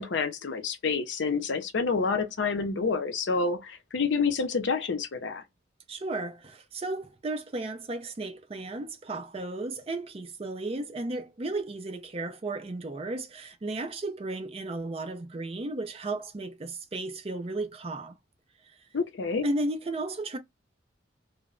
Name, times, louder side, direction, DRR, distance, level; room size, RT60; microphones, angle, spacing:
voice 1, 0.0-5.4 18.9-19.5, left 4 dB, 70° left, 0.5 m, -28 dB
voice 2, 5.9-18.2 18.6-18.7 19.4-20.4, right 2 dB, 30° right, 0.4 m, -34 dB
2.1 x 2.0 x 3.6 m
head